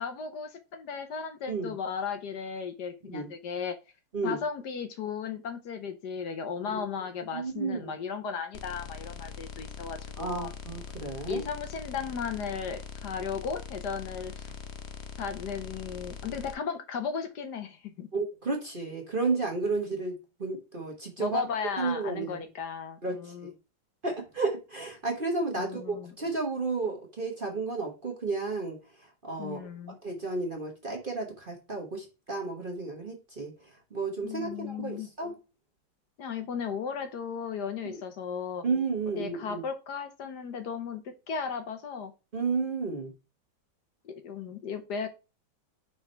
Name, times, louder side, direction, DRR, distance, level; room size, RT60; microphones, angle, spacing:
voice 1, 0.0-3.8 4.2-10.5 11.3-14.5 15.2-18.1 21.2-23.5 25.6-26.1 29.4-30.0 34.2-35.1 36.2-38.6 39.2-42.1 44.0-45.1, left 6 dB, 65° left, 1.4 m, -35 dB
voice 2, 7.3-7.9 10.2-11.4 18.1-21.4 21.8-22.5 23.0-23.3 24.0-28.8 29.2-29.6 30.0-33.5 33.9-35.3 37.8-38.0 38.6-39.6 42.3-43.1, right 3 dB, 30° right, 1.2 m, -32 dB
sound 1, 8.5-16.5, left 6 dB, 50° left, 0.8 m, -42 dB
5.6 x 4.8 x 4.4 m
omnidirectional pair, 2.1 m